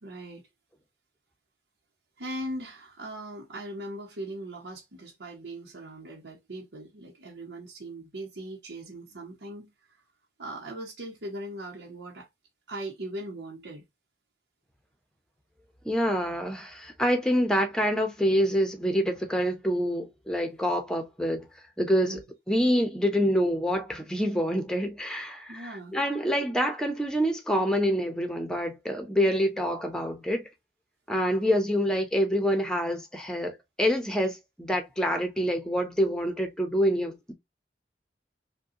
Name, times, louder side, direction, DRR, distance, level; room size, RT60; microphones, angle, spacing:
voice 1, 0.0-0.5 2.2-10.0 10.4-12.3 12.7-13.9 22.0-22.2 25.5-26.0, right 1 dB, 90° right, 0.9 m, -39 dB
voice 2, 15.8-21.5 21.8-22.2 22.5-30.5 31.1-37.3, equal, 5° left, 0.7 m, -26 dB
5.1 x 2.2 x 2.8 m
head